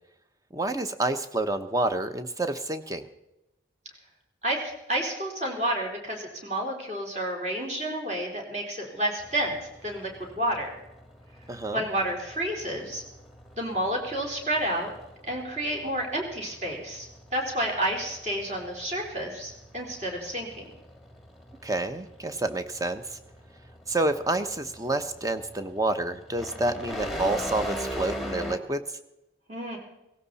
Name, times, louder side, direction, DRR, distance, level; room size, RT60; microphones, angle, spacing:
voice 1, 0.5-3.0 11.5-11.8 21.6-23.2 23.9-28.8, right 2 dB, 20° right, 9 dB, 0.9 m, -28 dB
voice 2, 4.9-9.6 9.8-10.7 11.7-13.0 13.6-14.9 15.3-20.7 29.5-29.8, right 1 dB, 35° right, 0 dB, 4.0 m, -30 dB
sound 1, 9.2-28.6, equal, ahead, 1.5 m, -42 dB
17.5 x 16.0 x 4.2 m, 0.92 s
head